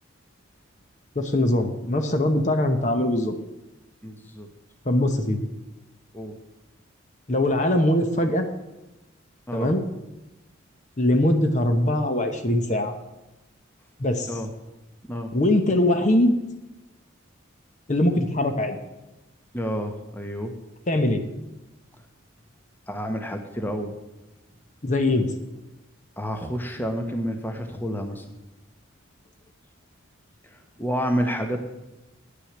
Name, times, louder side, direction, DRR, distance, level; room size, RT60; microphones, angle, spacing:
voice 1, 1.1-3.3 4.8-5.5 7.3-8.5 9.5-9.8 11.0-12.9 14.0-14.3 15.3-16.4 17.9-18.8 20.9-21.2 24.8-25.3, left 1 dB, 35° left, 6 dB, 0.9 m, -22 dB
voice 2, 4.0-4.5 6.1-6.4 9.5-9.7 14.3-14.5 15.1-15.3 19.5-20.5 22.9-24.0 26.2-28.2 30.4-31.6, equal, 10° left, 5 dB, 0.9 m, -29 dB
9.8 x 6.3 x 8.6 m, 1.0 s
head